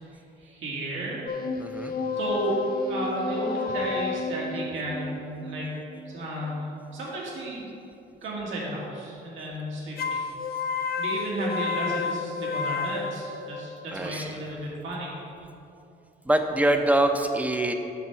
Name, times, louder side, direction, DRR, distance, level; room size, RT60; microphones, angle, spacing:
voice 1, 0.4-1.2 2.1-5.8 6.1-6.7 6.9-7.7 8.2-10.3 11.0-15.1, right 1 dB, 80° right, -4 dB, 2.0 m, -33 dB
sound 1, 1.3-6.6 10.0-13.9, left 4 dB, 50° left, 0.5 m, -31 dB
voice 2, 1.6-1.9 13.9-14.4 16.3-17.7, right 1 dB, 5° right, 5 dB, 0.7 m, -24 dB
8.4 x 5.9 x 4.5 m, 2.7 s
cardioid pair, 90°, 20 cm